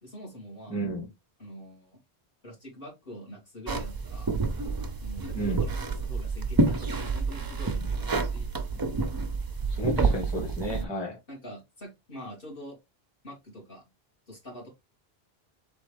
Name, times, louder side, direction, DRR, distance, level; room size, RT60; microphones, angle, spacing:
voice 1, 0.0-0.8 1.4-2.0 2.4-4.3 5.0-5.7 6.1-8.5 10.8-11.0 11.3-12.8 13.2-13.8 14.3-14.7, equal, 60° left, 2.4 m, -44 dB
voice 2, 0.7-1.1 5.3-5.6 9.7-11.2, right 1 dB, 25° left, 1.8 m, -32 dB
sound 1, 3.7-10.9, right 3 dB, 35° right, 0.4 m, -28 dB
4.3 x 3.5 x 3.3 m
omnidirectional pair, 1.0 m